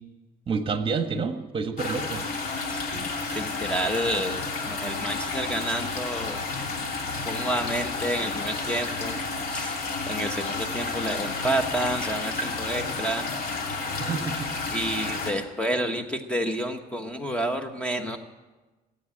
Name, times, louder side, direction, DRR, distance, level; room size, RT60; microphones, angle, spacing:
voice 1, 0.5-2.2 14.0-14.6, right 5 dB, 30° right, 7 dB, 1.4 m, -28 dB
sound 1, 1.8-15.3, left 3 dB, 60° left, 2.7 m, -31 dB
voice 2, 2.7-6.4 7.3-9.2 9.5-9.7 10.1-13.3 14.7-18.2, right 1 dB, 5° left, 6 dB, 1.2 m, -29 dB
19.0 x 8.7 x 8.8 m, 1.2 s
cardioid pair, 110°, 17 cm